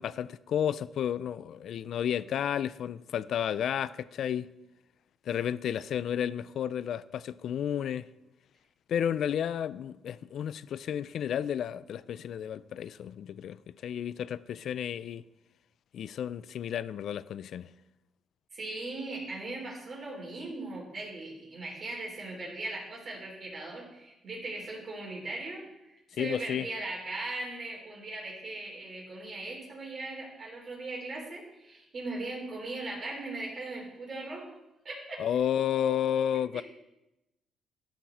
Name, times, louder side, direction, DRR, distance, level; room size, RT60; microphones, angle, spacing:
voice 1, 0.0-4.5 5.3-8.1 8.9-15.2 15.9-17.7 26.2-26.7 35.2-36.6, left 9 dB, 70° left, 0.3 m, -32 dB
voice 2, 18.5-34.5 34.8-35.2 36.5-36.6, right 2 dB, 45° right, 4.0 m, -39 dB
13.0 x 5.9 x 4.2 m
cardioid pair, 90°, 0 cm